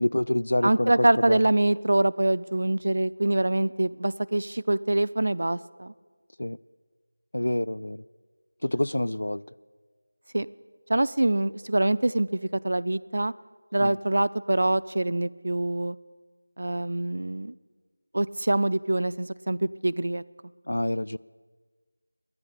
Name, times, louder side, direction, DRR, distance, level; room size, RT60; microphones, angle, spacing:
voice 1, 0.0-1.4 6.4-6.6 7.3-8.0 8.6-9.4 13.8-13.9 20.7-21.2, left 1 dB, 65° left, 19 dB, 0.3 m, -27 dB
voice 2, 0.6-5.9 10.3-10.5 10.9-13.3 13.7-16.0 16.6-17.5 18.1-20.2, right 1 dB, 55° right, 16 dB, 0.4 m, -25 dB
10.5 x 9.6 x 10.0 m, 1.5 s
figure-of-eight pair, 170°, 0 cm